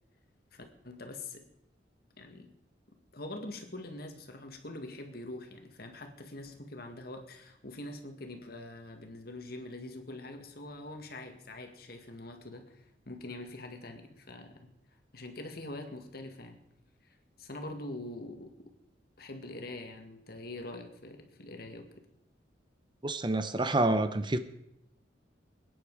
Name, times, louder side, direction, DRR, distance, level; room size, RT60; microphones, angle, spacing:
voice 1, 0.5-1.5 2.2-2.5 3.1-14.7 15.1-16.6 17.0-18.7 19.2-22.1, left 2 dB, 55° left, 2.0 m, -44 dB
voice 2, 23.0-24.4, right 2 dB, 25° right, 0.8 m, -28 dB
21.5 x 10.0 x 4.9 m
head